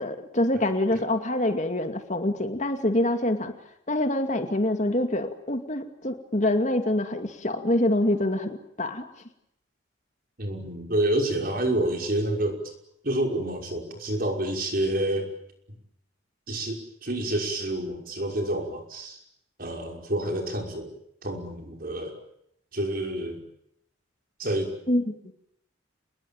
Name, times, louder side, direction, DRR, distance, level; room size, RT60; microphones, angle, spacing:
voice 1, 0.0-3.5 3.9-9.0 24.9-25.3, left 1 dB, 40° left, 6 dB, 2.4 m, -25 dB
voice 2, 10.4-12.7 13.0-15.3 16.5-19.2 19.6-20.9 21.2-22.2 22.7-23.4 24.4-24.7, right 1 dB, 50° right, 3 dB, 5.8 m, -28 dB
29.0 x 21.0 x 9.0 m, 0.76 s
head